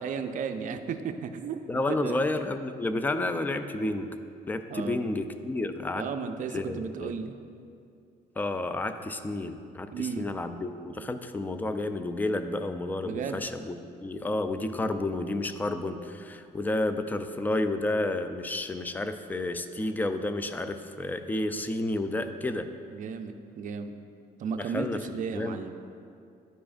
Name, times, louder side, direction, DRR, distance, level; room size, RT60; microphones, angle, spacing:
voice 1, 0.0-1.6 2.0-2.2 4.7-5.0 6.0-7.4 9.9-10.3 13.0-13.4 22.9-23.9 24.4-24.9 25.1-25.7, right 6 dB, 50° right, 7 dB, 0.5 m, -34 dB
voice 2, 1.7-4.1 4.5-6.1 6.5-7.2 8.4-22.7 24.6-25.6, left 2 dB, 10° left, 9 dB, 0.3 m, -31 dB
11.0 x 4.8 x 2.5 m, 2.4 s
cardioid pair, 110°, 17 cm